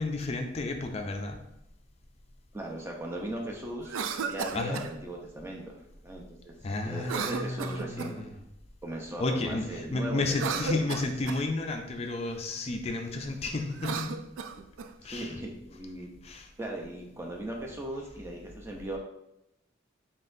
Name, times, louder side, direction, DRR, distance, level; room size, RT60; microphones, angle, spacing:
voice 1, 0.0-1.4 4.5-4.9 6.6-8.3 9.2-14.2 15.0-15.3 16.2-16.5, left 2 dB, 30° left, 4 dB, 0.4 m, -32 dB
voice 2, 2.5-5.8 6.0-6.5 6.8-8.2 8.8-11.0 15.0-16.1 16.6-19.0, right 1 dB, 15° right, -1 dB, 0.6 m, -38 dB
Cough, 3.8-4.9 7.0-8.3 10.2-11.4 13.7-14.9, right 5 dB, 85° right, 0.3 m, -35 dB
4.1 x 3.7 x 2.6 m, 0.84 s
head